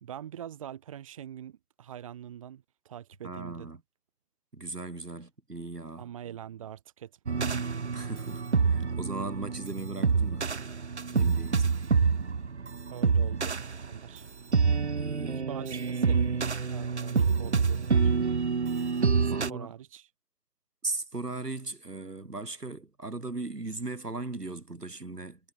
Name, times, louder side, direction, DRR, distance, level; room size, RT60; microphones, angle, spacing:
voice 1, 0.0-3.7 6.0-7.7 12.9-14.3 15.3-16.3 16.7-18.2 19.2-20.1, right 10 dB, 20° right, 2.9 m, -44 dB
voice 2, 3.2-3.8 4.5-6.1 7.9-10.5 11.1-11.9 14.5-15.4 19.2-19.7 20.8-25.4, right 3 dB, 80° right, 6.7 m, -38 dB
sound 1, 7.3-19.5, right 5 dB, 45° right, 0.7 m, -27 dB
figure-of-eight pair, 160°, 47 cm